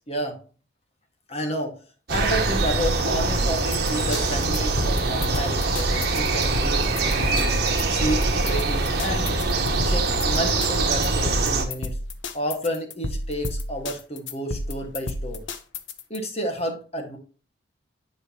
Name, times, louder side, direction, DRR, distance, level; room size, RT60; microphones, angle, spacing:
voice 1, 0.1-0.4 1.3-1.8 2.1-7.5 7.9-9.4 9.8-12.0 12.3-15.4 16.1-17.2, equal, 30° left, 4 dB, 1.6 m, -30 dB
sound 1, 2.1-11.6, right 3 dB, 50° right, 1.6 m, -23 dB
sound 2, 3.3-16.2, left 2 dB, 70° left, 0.9 m, -32 dB
sound 3, 3.5-4.5, left 3 dB, 50° left, 1.7 m, -39 dB
9.9 x 5.2 x 2.9 m, 0.37 s
head